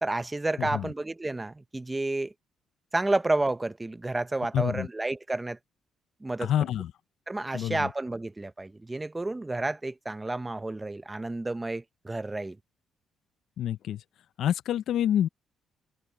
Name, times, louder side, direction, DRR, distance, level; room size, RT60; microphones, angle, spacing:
voice 1, 0.0-2.3 2.9-5.6 6.2-6.5 7.3-12.6, right 2 dB, 15° right, 0.8 m, -30 dB
voice 2, 0.6-0.9 4.5-4.9 6.4-6.9 7.5-7.9 13.6-14.0 14.4-15.3, left 11 dB, 75° left, 0.4 m, -27 dB
cardioid pair, 90°, 0 cm